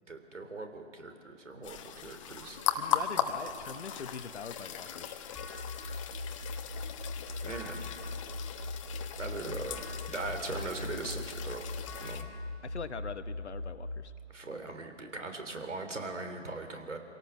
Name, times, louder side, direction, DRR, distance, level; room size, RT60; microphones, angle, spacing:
voice 1, 0.1-2.6 7.4-7.9 9.2-11.6 12.0-12.3 14.3-17.0, right 3 dB, 80° right, 6 dB, 3.4 m, -40 dB
sound 1, 1.6-12.2, left 9 dB, 25° left, 1.1 m, -38 dB
sound 2, 2.2-6.0, right 3 dB, 25° right, 2.6 m, -61 dB
voice 2, 2.8-5.1 12.6-14.1, left 5 dB, 65° left, 10 dB, 1.3 m, -42 dB
sound 3, 5.4-14.0, left 2 dB, ahead, 0.5 m, -40 dB
25.5 x 18.0 x 7.2 m, 2.4 s
figure-of-eight pair, 140°, 36 cm